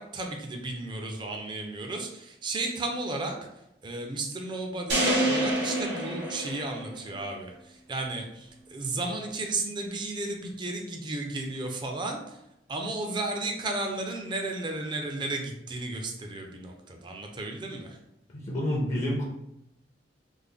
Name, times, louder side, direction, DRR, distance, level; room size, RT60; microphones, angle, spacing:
voice 1, 0.0-3.4 3.8-12.4 12.7-18.0, right 2 dB, 25° right, 2 dB, 0.5 m, -34 dB
sound 1, 4.9-7.2, right 1 dB, 80° right, 1.0 m, -27 dB
voice 2, 18.3-19.2, equal, 40° left, -3 dB, 0.6 m, -28 dB
3.4 x 2.1 x 3.6 m, 0.84 s
head